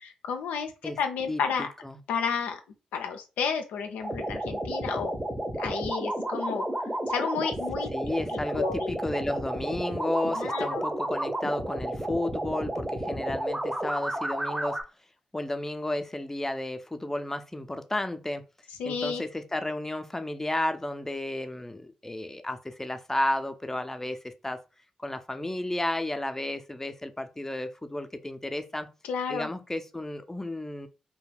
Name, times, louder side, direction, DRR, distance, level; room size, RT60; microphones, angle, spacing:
voice 1, 0.0-0.7 1.0-1.7 2.1-2.6 2.9-5.2 5.6-7.9 8.6-9.0 10.4-10.8 18.8-19.2 29.1-29.5, left 6 dB, 80° left, 0.4 m, -31 dB
voice 2, 1.3-2.0 7.9-14.8 15.3-18.4 18.8-24.6 25.0-28.9 29.3-30.9, left 1 dB, 15° left, 0.5 m, -32 dB
sound 1, 4.0-14.8, right 1 dB, 20° right, 0.7 m, -32 dB
2.3 x 2.2 x 3.2 m
hypercardioid pair, 40°, 3 cm